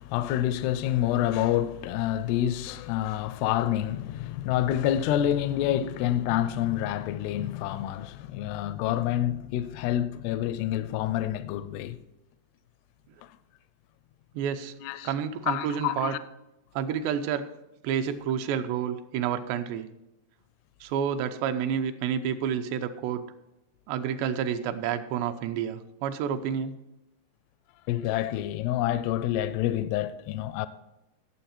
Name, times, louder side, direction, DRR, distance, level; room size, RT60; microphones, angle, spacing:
voice 1, 0.0-12.0 14.8-15.1 15.5-16.2 27.9-30.7, left 12 dB, 85° left, 2.5 m, -28 dB
voice 2, 14.3-14.7 15.0-16.2 16.8-17.5 17.8-19.9 20.8-23.2 23.9-26.7, right 8 dB, 85° right, 2.9 m, -29 dB
17.0 x 7.4 x 4.3 m
omnidirectional pair, 4.9 m